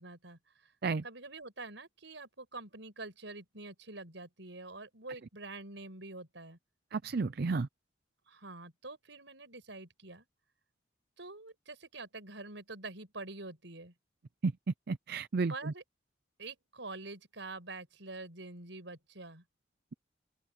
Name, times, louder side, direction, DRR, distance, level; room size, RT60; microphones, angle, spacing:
voice 1, 0.0-0.7 1.0-6.6 8.3-10.3 11.2-13.9 15.5-15.8 16.4-19.4, right 3 dB, 75° right, 5.9 m, -46 dB
voice 2, 6.9-7.7 14.4-14.5 14.9-15.7, right 4 dB, 55° right, 0.5 m, -32 dB
open air
head